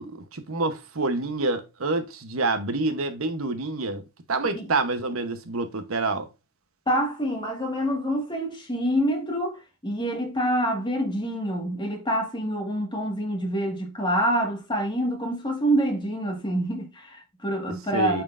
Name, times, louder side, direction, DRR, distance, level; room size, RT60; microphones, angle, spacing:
voice 1, 0.0-4.0 4.3-6.3 17.9-18.2, right 3 dB, 85° right, 1.0 m, -27 dB
voice 2, 6.9-18.2, equal, 20° left, 1.8 m, -26 dB
8.9 x 4.4 x 2.6 m
head